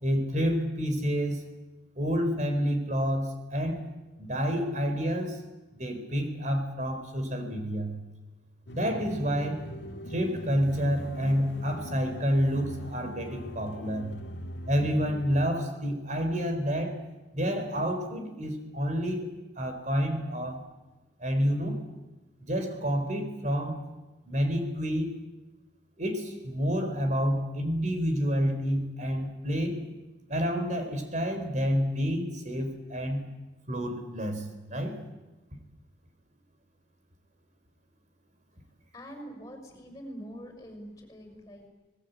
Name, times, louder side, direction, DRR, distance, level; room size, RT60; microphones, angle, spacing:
voice 1, 0.0-1.5 2.0-3.8 4.2-5.4 5.7-8.0 8.7-9.7 10.1-14.2 14.7-17.0 17.3-19.3 19.6-20.6 21.2-21.8 22.4-23.8 24.3-25.2 26.0-29.8 30.3-33.3 33.7-35.0, equal, 40° right, 7 dB, 4.2 m, -29 dB
sound 1, 8.7-15.5, equal, 70° left, 1.9 m, -41 dB
voice 2, 38.9-41.7, equal, 20° left, 4 dB, 6.3 m, -44 dB
25.5 x 20.5 x 8.3 m, 1.1 s
head